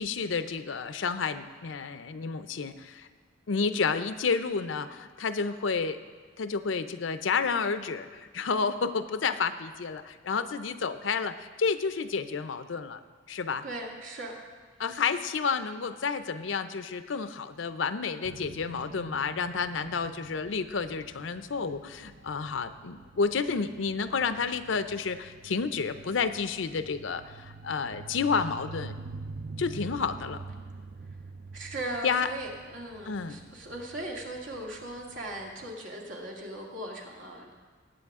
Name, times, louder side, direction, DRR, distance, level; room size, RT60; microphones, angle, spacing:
voice 1, 0.0-3.1 3.5-6.0 6.4-13.0 13.3-13.6 14.8-28.9 29.6-30.4 32.0-32.3 33.1-33.4, left 5 dB, 75° left, 11 dB, 0.6 m, -30 dB
voice 2, 13.6-14.4 14.9-15.0 31.5-37.5, right 1 dB, 75° right, -1 dB, 2.1 m, -38 dB
sound 1, 18.2-35.7, right 3 dB, 50° right, 0.4 m, -46 dB
19.5 x 8.5 x 3.6 m, 1.5 s
head